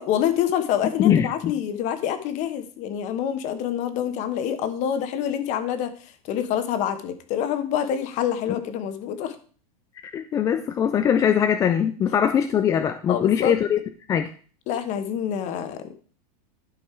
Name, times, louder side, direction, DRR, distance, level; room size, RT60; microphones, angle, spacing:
voice 1, 0.0-9.4 13.1-13.5 14.7-16.0, left 9 dB, 35° left, 10 dB, 1.2 m, -26 dB
voice 2, 0.8-1.5 10.0-13.8 14.1-14.3, left 9 dB, 15° left, 9 dB, 0.3 m, -21 dB
12.0 x 5.4 x 4.5 m, 0.42 s
supercardioid pair, 150°, 21 cm